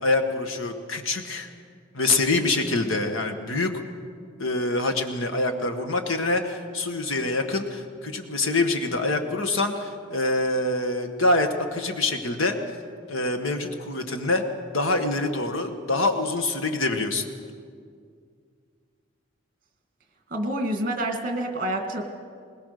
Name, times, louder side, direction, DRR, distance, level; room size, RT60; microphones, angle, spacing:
voice 1, 0.0-1.5 1.9-3.7 4.4-12.6 13.1-14.4 14.7-17.2, left 2 dB, 75° left, 6 dB, 1.7 m, -25 dB
voice 2, 20.3-22.0, right 1 dB, 40° right, 4 dB, 2.1 m, -27 dB
21.5 x 20.0 x 6.7 m, 2.2 s
head